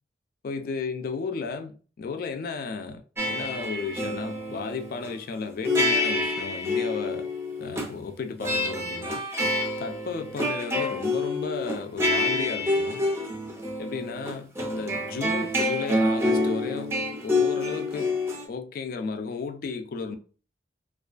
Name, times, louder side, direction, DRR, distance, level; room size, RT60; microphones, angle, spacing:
voice 1, 0.4-7.3 7.6-9.2 9.8-13.0 13.8-18.2 18.5-20.2, left 4 dB, 55° left, 0.3 m, -34 dB
sound 1, 3.2-5.1 5.6-7.9 8.4-18.5, left 2 dB, 15° right, 0.4 m, -27 dB
2.4 x 2.2 x 2.4 m
head